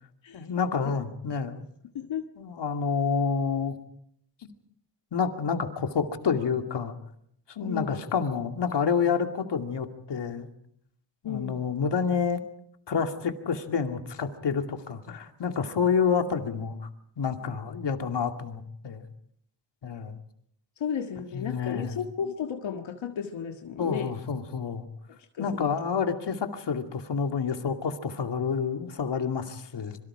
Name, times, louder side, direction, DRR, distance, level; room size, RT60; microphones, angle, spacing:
voice 1, 0.3-1.6 2.4-3.7 5.1-7.0 7.5-10.5 11.2-12.4 12.9-16.8 17.2-19.1 19.8-20.2 21.3-22.0 23.8-24.9 25.4-30.0, left 6 dB, 65° left, 6 dB, 2.5 m, -28 dB
voice 2, 7.7-8.0 11.2-11.6 20.8-24.1 25.3-25.7, left 8 dB, 85° left, 4 dB, 1.8 m, -33 dB
26.0 x 23.5 x 5.0 m, 0.68 s
cardioid pair, 100°, 45 cm